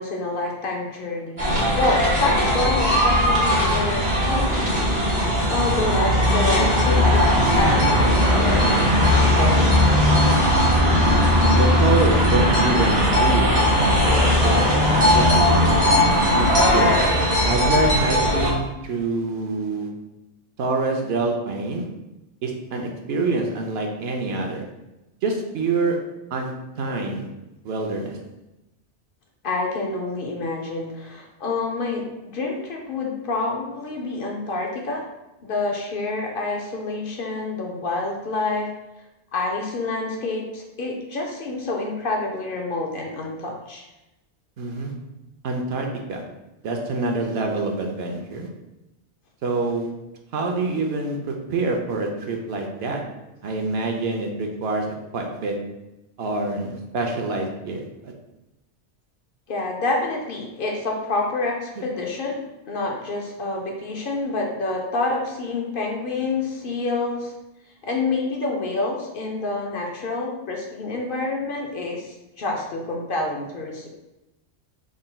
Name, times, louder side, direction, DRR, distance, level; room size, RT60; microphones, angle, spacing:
voice 1, 0.0-7.2 7.6-9.9 29.4-35.1 35.4-38.7 39.3-43.8 59.5-67.3 67.8-73.9, left 2 dB, 60° left, 0 dB, 0.7 m, -28 dB
sound 1, 1.4-18.5, left 1 dB, 40° right, 1.1 m, -18 dB
voice 2, 11.4-13.5 14.4-14.6 15.1-15.6 16.3-17.0 17.4-19.9 20.6-21.8 22.4-24.6 25.2-26.0 26.3-26.5 26.8-27.3 27.6-28.2 44.6-44.9 45.4-46.2 46.6-48.5 49.4-49.9 50.3-53.0 53.4-54.9 55.1-55.6 56.2-58.1, right 3 dB, 70° right, 2 dB, 0.8 m, -26 dB
4.1 x 3.7 x 2.2 m, 0.96 s
omnidirectional pair, 1.2 m